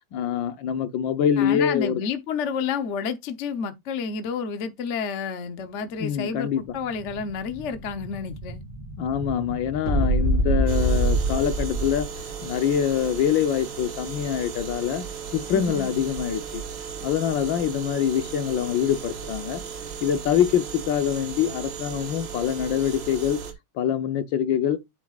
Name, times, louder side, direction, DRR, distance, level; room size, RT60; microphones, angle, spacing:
voice 1, 0.1-2.0 6.0-6.6 9.0-12.1 12.4-15.1 15.3-16.6 17.0-19.6 20.0-23.4 23.7-24.8, left 9 dB, 65° left, 1.5 m, -24 dB
voice 2, 1.4-8.6 15.5-16.0, left 6 dB, 50° left, 0.9 m, -30 dB
Explosion, 6.3-12.2, right 1 dB, 30° right, 5.0 m, -26 dB
sound 1, 10.7-23.5, right 6 dB, 60° right, 2.1 m, -36 dB
8.6 x 8.2 x 2.4 m
omnidirectional pair, 2.4 m